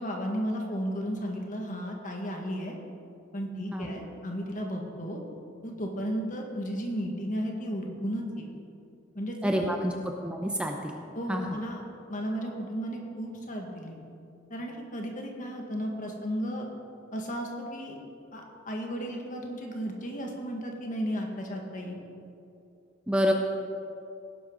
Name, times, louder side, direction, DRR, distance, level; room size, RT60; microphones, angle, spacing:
voice 1, 0.0-2.8 3.3-5.2 5.6-8.5 9.1-9.5 11.1-11.8 12.1-14.0 14.5-16.7 17.1-18.0 18.3-22.0, equal, 45° left, 1 dB, 1.9 m, -34 dB
voice 2, 9.4-9.9 10.2-11.0 11.3-11.6 23.1-23.3, equal, 5° right, 2 dB, 0.7 m, -28 dB
18.5 x 11.0 x 4.0 m, 2.6 s
head